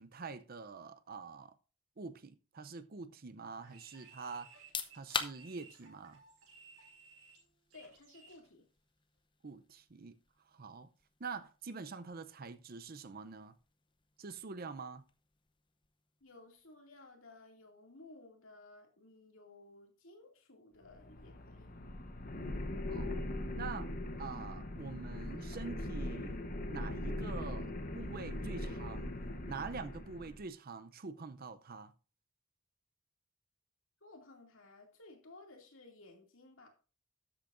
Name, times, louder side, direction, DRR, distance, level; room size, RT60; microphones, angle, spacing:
voice 1, 0.0-1.5 2.0-4.5 4.9-6.2 9.4-10.2 10.5-10.9 11.2-13.6 14.2-15.1 22.9-23.2 23.6-29.2 29.5-31.9, right 4 dB, 45° right, 0.6 m, -45 dB
sound 1, 3.6-8.5, right 4 dB, 90° right, 5.3 m, -59 dB
sound 2, 4.5-17.1, left 5 dB, 20° left, 0.7 m, -48 dB
voice 2, 7.7-8.6 16.2-21.8 34.0-36.7, left 2 dB, 65° left, 2.5 m, -57 dB
sound 3, 20.8-30.4, left 1 dB, 40° left, 1.0 m, -40 dB
12.0 x 8.4 x 2.6 m
head